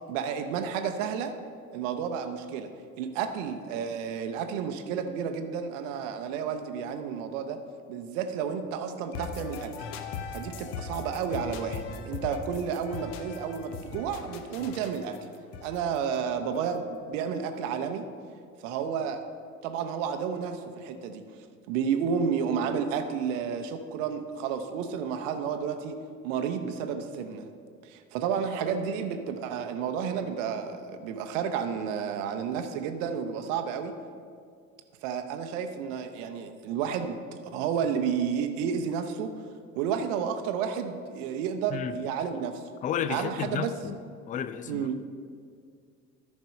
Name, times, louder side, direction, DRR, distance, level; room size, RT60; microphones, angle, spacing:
voice 1, 0.1-1.3 1.7-2.7 3.0-7.6 7.9-9.7 10.3-15.2 15.6-18.1 18.6-19.2 19.6-21.2 21.7-26.0 26.2-27.5 27.8-33.9 35.0-37.2 37.5-39.5 39.7-42.6 43.1-43.7 44.7-45.0, right 7 dB, 60° right, 0.8 m, -31 dB
sound 1, 9.1-17.0, left 5 dB, 50° left, 0.8 m, -40 dB
voice 2, 42.8-44.0 44.3-44.9, left 8 dB, 20° left, 0.3 m, -32 dB
13.0 x 5.2 x 5.3 m
figure-of-eight pair, 55°, 42 cm